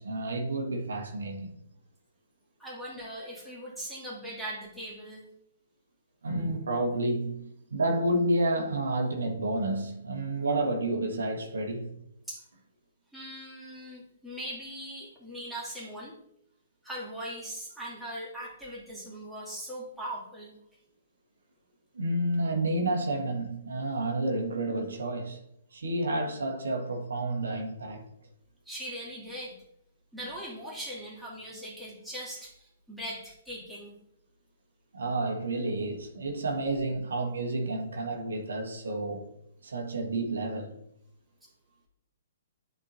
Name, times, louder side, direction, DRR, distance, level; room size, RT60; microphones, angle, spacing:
voice 1, 0.0-1.5 6.2-11.9 21.9-25.4 25.7-28.0 34.9-39.3 39.6-40.8, right 2 dB, 75° right, 1.4 m, -30 dB
voice 2, 2.6-5.2 12.3-12.4 13.1-16.1 16.8-20.5 28.7-29.6 30.1-33.9, right 1 dB, ahead, 2.7 m, -40 dB
11.0 x 4.6 x 2.7 m
hypercardioid pair, 125°, 0 cm